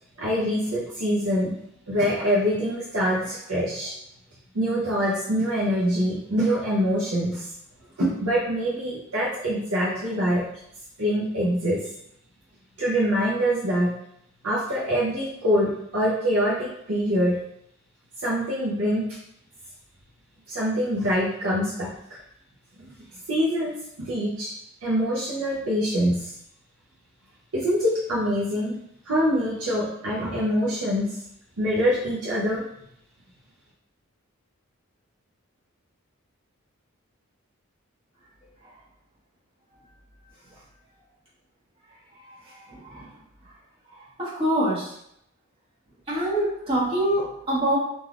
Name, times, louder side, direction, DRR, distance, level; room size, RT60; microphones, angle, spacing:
voice 1, 0.2-1.6 1.9-3.9 4.5-7.5 8.0-10.4 11.0-11.8 12.8-13.9 14.4-17.4 18.2-19.1 20.5-21.9 22.8-22.9 23.3-24.5 24.8-26.3 27.5-28.7 29.1-31.2 31.6-32.6, equal, 85° right, -6 dB, 0.7 m, -24 dB
voice 2, 42.7-43.0 44.2-44.9 46.1-47.8, right 1 dB, 25° right, -9 dB, 1.2 m, -25 dB
3.2 x 2.6 x 2.4 m, 0.74 s
head